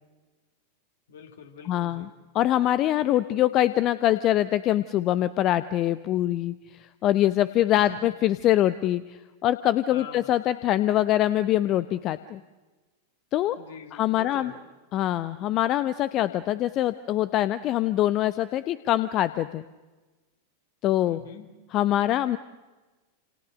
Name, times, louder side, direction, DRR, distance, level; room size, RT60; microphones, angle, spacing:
voice 1, 1.1-2.1 7.7-8.1 9.9-10.3 13.6-14.5 21.0-21.5, left 7 dB, 60° left, 5 dB, 4.8 m, -44 dB
voice 2, 1.7-2.1 2.3-12.4 13.3-13.6 13.9-14.5 14.9-19.6 20.8-21.2 21.7-22.4, left 13 dB, 35° left, 14 dB, 1.0 m, -24 dB
29.5 x 28.5 x 6.4 m, 1.2 s
figure-of-eight pair, 90°, 0 cm